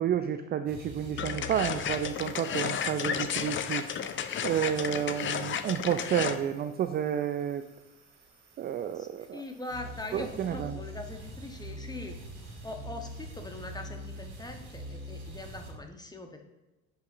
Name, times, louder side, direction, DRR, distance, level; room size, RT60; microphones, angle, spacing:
voice 1, 0.0-3.9 4.4-7.6 8.6-9.4 10.1-10.8, right 9 dB, 25° right, 9 dB, 0.4 m, -30 dB
sound 1, 0.7-15.7, equal, 65° right, 2.3 m, -46 dB
sound 2, 1.2-6.4, left 8 dB, 30° left, 0.6 m, -33 dB
voice 2, 8.9-12.2 12.6-16.4, left 2 dB, 10° left, 4 dB, 1.1 m, -42 dB
10.5 x 5.3 x 2.6 m, 1.1 s
hypercardioid pair, 60°, 39 cm